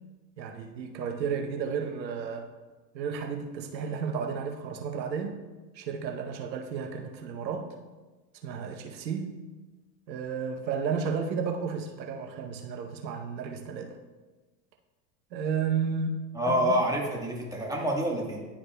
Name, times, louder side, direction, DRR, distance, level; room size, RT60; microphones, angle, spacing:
voice 1, 0.4-2.5 2.9-5.4 5.7-7.8 8.4-9.3 10.1-14.0 15.3-16.8, right 6 dB, 85° right, 3 dB, 0.9 m, -32 dB
voice 2, 16.3-18.5, equal, 5° right, -2 dB, 1.4 m, -27 dB
11.0 x 4.9 x 2.2 m, 1.2 s
hypercardioid pair, 95°, 50 cm